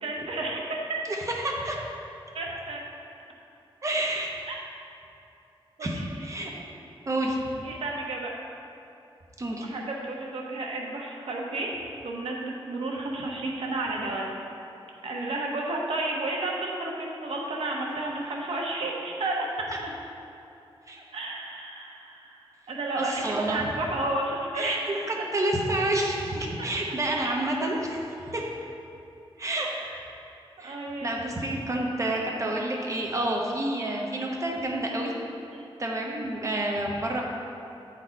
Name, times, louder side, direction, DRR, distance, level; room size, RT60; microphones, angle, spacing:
voice 1, 0.0-0.6 2.3-2.8 4.5-4.6 5.8-5.9 7.6-8.3 9.6-11.7 12.0-14.3 15.0-19.5 21.1-22.4 22.7-25.3 26.6-26.7 27.1-27.4 29.8-29.9 30.6-31.2 32.1-32.2 35.5-35.7, right 2 dB, 85° right, -1 dB, 1.0 m, -32 dB
voice 2, 1.1-1.8 3.8-4.3 5.8-6.5 7.1-7.4 9.4-9.7 20.9-21.0 23.0-23.7 24.5-28.0 28.3-28.5 29.4-29.7 30.6-35.1 35.8-37.2, right 1 dB, 30° right, -1 dB, 0.9 m, -29 dB
7.9 x 4.1 x 4.4 m, 2.7 s
wide cardioid pair, 145°, 10 cm